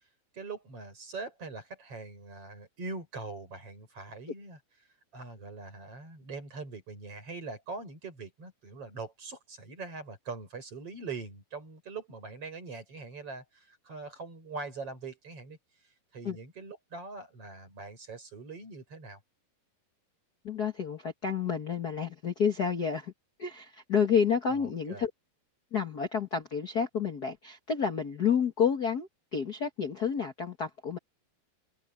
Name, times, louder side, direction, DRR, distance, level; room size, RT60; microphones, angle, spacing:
voice 1, 0.3-4.6 5.1-15.6 16.1-19.2 24.5-25.0, right 4 dB, 35° right, 6.6 m, -42 dB
voice 2, 20.4-23.1 23.4-25.1 25.7-31.0, left 7 dB, 60° left, 1.0 m, -30 dB
omnidirectional pair, 4.4 m